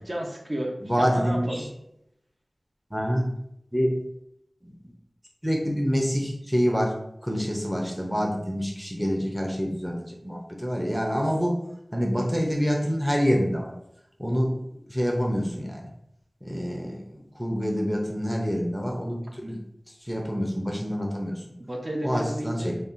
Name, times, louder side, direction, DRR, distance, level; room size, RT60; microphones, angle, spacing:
voice 1, 0.1-1.6 21.6-22.8, right 1 dB, 40° right, 0 dB, 0.7 m, -32 dB
voice 2, 0.8-1.7 2.9-3.3 3.7-4.0 4.6-4.7 5.4-7.0 7.2-11.6 11.9-13.7 14.2-15.9 16.4-19.6 20.0-21.4 22.0-22.8, equal, 5° right, 0 dB, 0.6 m, -27 dB
5.3 x 2.4 x 2.6 m, 0.78 s
wide cardioid pair, 60°, 0 cm